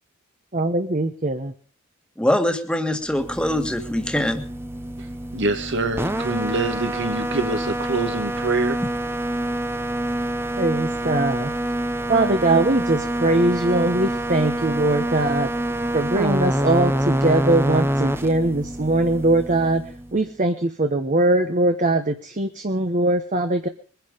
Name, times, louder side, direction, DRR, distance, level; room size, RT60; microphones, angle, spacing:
voice 1, 0.5-1.5 10.6-11.5 12.1-15.5 15.9-19.8 20.1-23.7, right 2 dB, 35° right, 1.1 m, -21 dB
voice 2, 2.2-4.4, left 1 dB, 5° left, 1.7 m, -23 dB
sound 1, 3.1-20.3, right 1 dB, 10° right, 0.9 m, -26 dB
voice 3, 5.3-8.8, right 2 dB, 60° right, 2.0 m, -25 dB
22.5 x 10.5 x 5.2 m
head